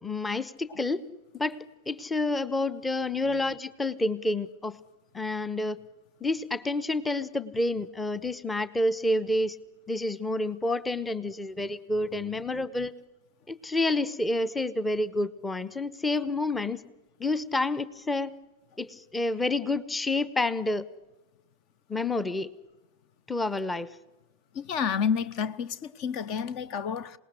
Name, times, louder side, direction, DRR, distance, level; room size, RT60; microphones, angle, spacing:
voice 1, 0.0-1.0 1.3-1.6 1.9-4.8 5.1-5.8 6.2-9.6 9.9-12.9 13.5-16.8 17.2-18.3 18.8-20.9 21.9-22.5 23.3-23.9, left 2 dB, 10° left, 1.0 m, -29 dB
voice 2, 24.5-27.2, left 7 dB, 40° left, 1.0 m, -30 dB
27.0 x 19.5 x 9.8 m
figure-of-eight pair, 90°, 0 cm